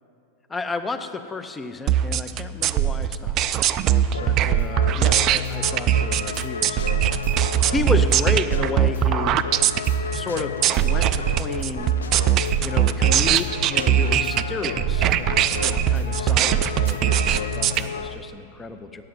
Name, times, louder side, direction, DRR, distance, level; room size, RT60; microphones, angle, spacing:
voice 1, 0.5-3.4 4.2-9.4 10.1-11.9 12.6-19.0, left 3 dB, 15° left, 9 dB, 0.6 m, -32 dB
sound 1, 1.9-17.8, right 10 dB, 35° right, 0.3 m, -21 dB
sound 2, 4.1-18.2, left 6 dB, 70° left, 0.4 m, -32 dB
9.1 x 7.6 x 7.6 m, 2.8 s
figure-of-eight pair, 90°, 0 cm